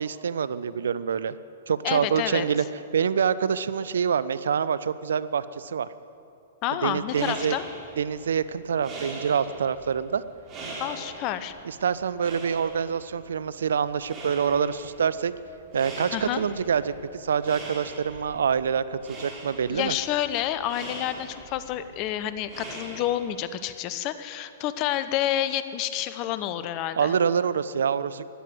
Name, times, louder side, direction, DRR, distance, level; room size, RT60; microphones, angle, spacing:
voice 1, 0.0-1.4 1.7-2.6 2.9-5.9 6.8-7.6 8.0-10.2 11.6-15.3 15.7-19.9 27.0-28.3, right 7 dB, 75° right, 16 dB, 0.5 m, -26 dB
voice 2, 1.8-2.4 6.6-7.7 10.8-11.5 16.1-16.4 19.7-27.1, left 12 dB, 40° left, 13 dB, 0.9 m, -29 dB
sound 1, 6.9-23.5, right 2 dB, 30° right, 4.4 m, -42 dB
16.5 x 11.0 x 7.7 m, 2.8 s
hypercardioid pair, 115°, 0 cm